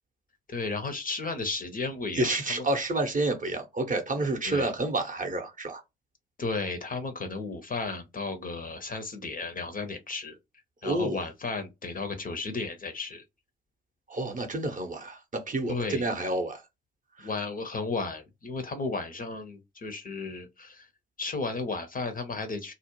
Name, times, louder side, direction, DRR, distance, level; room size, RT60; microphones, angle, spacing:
voice 1, 0.5-2.7 4.4-4.7 6.4-10.4 10.8-13.2 15.7-16.0 17.2-20.9 21.2-22.7, left 3 dB, 30° left, 0.6 m, -34 dB
voice 2, 2.2-5.8 10.8-11.2 14.1-16.6 17.2-17.3, right 2 dB, 25° right, 0.7 m, -29 dB
2.4 x 2.0 x 2.9 m
figure-of-eight pair, 45°, 31 cm